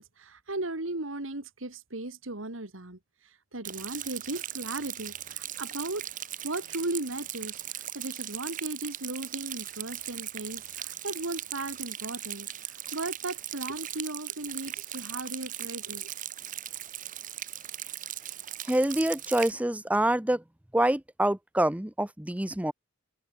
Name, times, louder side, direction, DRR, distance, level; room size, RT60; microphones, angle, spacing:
voice 1, 0.0-6.1 6.4-16.1, right 2 dB, 90° right, 2.6 m, -37 dB
Rain, 3.6-19.5, right 12 dB, 40° right, 2.3 m, -39 dB
voice 2, 18.7-20.4 20.7-22.7, right 1 dB, 5° right, 0.6 m, -26 dB
head